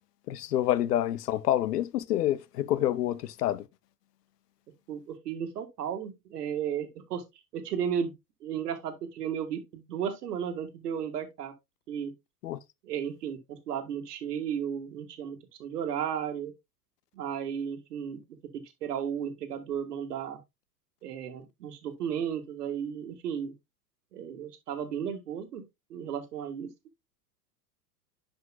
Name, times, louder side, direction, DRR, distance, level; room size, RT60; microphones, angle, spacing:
voice 1, 0.3-3.6 12.4-12.6, left 12 dB, 75° left, 0.7 m, -27 dB
voice 2, 4.9-7.2 7.5-8.1 8.4-11.5 11.9-12.1 12.8-16.5 17.1-18.2 18.5-20.4 21.0-23.5 24.1-25.6 25.9-26.7, right 8 dB, 75° right, 1.7 m, -34 dB
11.0 x 5.1 x 2.3 m
figure-of-eight pair, 85°, 48 cm